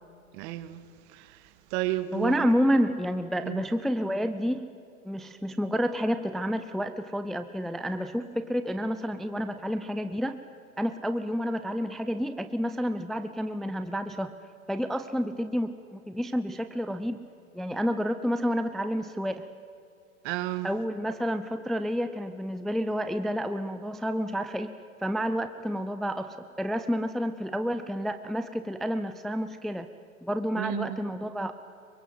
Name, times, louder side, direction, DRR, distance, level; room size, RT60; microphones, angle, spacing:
voice 1, 0.3-0.8 1.2-1.3 1.7-2.5 3.4-3.6 20.2-20.7 30.6-31.0, right 15 dB, 50° right, 1.9 m, -31 dB
voice 2, 2.1-4.6 5.0-10.4 10.8-14.3 14.7-17.2 17.5-19.5 20.6-24.7 25.0-29.9 30.2-31.5, equal, ahead, 0.6 m, -29 dB
27.0 x 24.0 x 7.9 m
hypercardioid pair, 120°, 43 cm